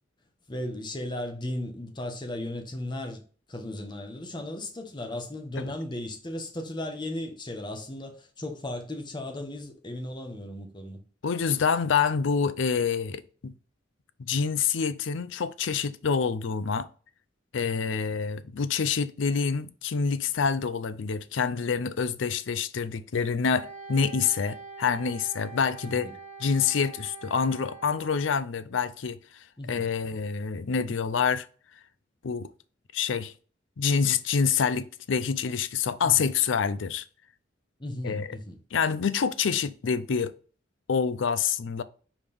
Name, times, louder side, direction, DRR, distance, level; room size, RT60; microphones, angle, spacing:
voice 1, 0.5-3.2 3.5-11.0 17.6-17.8 25.8-26.2 29.6-29.8 36.0-36.3 37.8-38.6, left 1 dB, 25° left, 1.1 m, -36 dB
voice 2, 11.2-13.5 14.3-16.9 17.5-26.1 26.4-29.2 29.7-31.5 32.2-32.5 32.9-33.3 33.8-37.0 38.0-38.4 38.7-40.3 40.9-41.8, left 6 dB, 75° left, 0.5 m, -27 dB
Wind instrument woodwind instrument, 23.6-28.4, right 5 dB, 65° right, 1.5 m, -44 dB
5.0 x 3.5 x 5.3 m
head